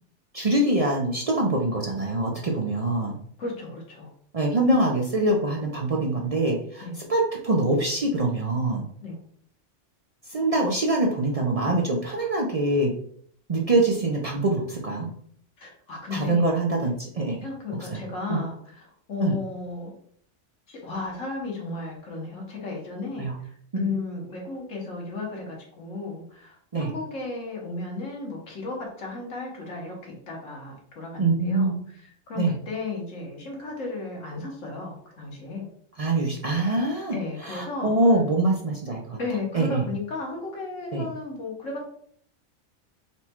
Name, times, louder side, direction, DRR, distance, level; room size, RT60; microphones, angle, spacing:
voice 1, 0.3-3.2 4.3-8.8 10.3-12.9 13.5-15.1 16.1-17.4 17.9-18.0 18.3-18.4 19.2-19.4 23.2-23.4 26.7-26.9 31.2-31.8 32.4-32.5 36.0-37.2 37.4-39.2 39.5-39.9 40.9-41.1, right 2 dB, 45° right, -1 dB, 0.5 m, -24 dB
voice 2, 3.4-4.1 6.8-7.0 9.0-9.2 15.6-16.5 17.4-19.9 20.7-35.7 37.1-37.9 39.2-41.9, left 3 dB, 90° left, -1 dB, 1.6 m, -34 dB
4.2 x 2.2 x 4.3 m, 0.62 s
omnidirectional pair, 1.3 m